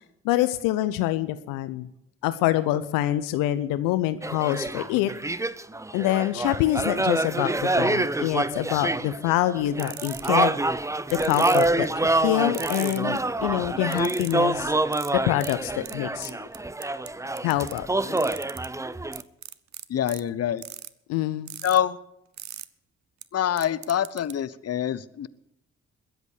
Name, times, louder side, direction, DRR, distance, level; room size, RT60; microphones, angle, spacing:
voice 1, 0.2-1.9 2.2-5.1 5.9-10.5 11.2-11.9 12.2-14.7 15.1-16.3 17.4-18.2 21.1-21.5, left 14 dB, 75° left, 14 dB, 0.7 m, -25 dB
sound 1, 4.2-19.2, right 2 dB, 10° right, 0.7 m, -26 dB
sound 2, 9.8-10.4 11.1-11.9 12.5-13.2 13.9-14.4 14.9-15.1 15.4-15.5 15.8-15.9 16.2-17.1 17.4-17.8 18.2-18.7 19.1-20.2 20.6-20.9 21.5-21.8 22.4-22.7 23.2-23.3 23.6-24.3, right 11 dB, 55° right, 0.8 m, -38 dB
voice 2, 19.9-20.6 21.6-22.0 23.3-25.3, left 10 dB, 45° left, 17 dB, 0.9 m, -25 dB
21.0 x 8.1 x 6.7 m, 0.83 s
hypercardioid pair, 40°, 33 cm